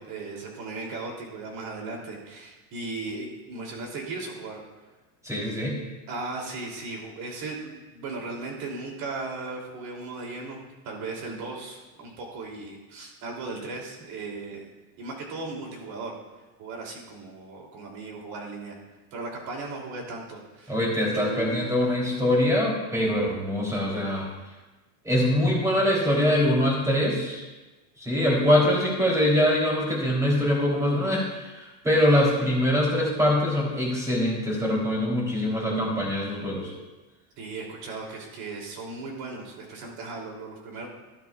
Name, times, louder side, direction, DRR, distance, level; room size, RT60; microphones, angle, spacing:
voice 1, 0.0-4.6 6.1-14.7 15.0-16.2 16.6-18.8 19.1-20.8 21.1-21.6 37.4-40.9, right 3 dB, 50° right, 0 dB, 3.3 m, -37 dB
voice 2, 5.2-5.8 20.7-24.3 25.0-27.4 28.0-36.7, left 1 dB, 5° right, -4 dB, 3.5 m, -23 dB
13.0 x 12.0 x 2.5 m, 1.2 s
supercardioid pair, 130°, 45 cm